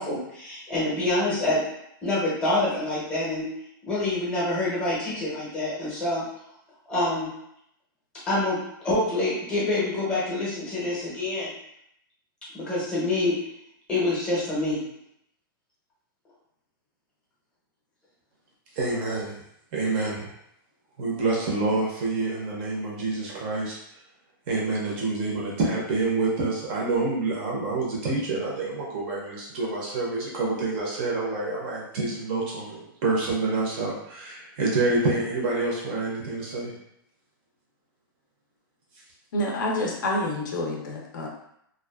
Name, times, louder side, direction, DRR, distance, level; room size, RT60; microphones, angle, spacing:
voice 1, 0.0-1.6 2.0-3.5 3.9-6.2 6.9-7.3 8.3-8.6 8.8-11.5 12.5-13.4 13.9-14.8, left 2 dB, 10° left, -8 dB, 0.7 m, -26 dB
voice 2, 18.8-19.3 19.7-20.3 21.0-23.8 24.5-36.7, right 3 dB, 25° right, -3 dB, 0.5 m, -27 dB
voice 3, 39.3-41.3, left 1 dB, 55° left, 0 dB, 0.5 m, -28 dB
2.5 x 2.2 x 2.3 m, 0.76 s
supercardioid pair, 175°, 12 cm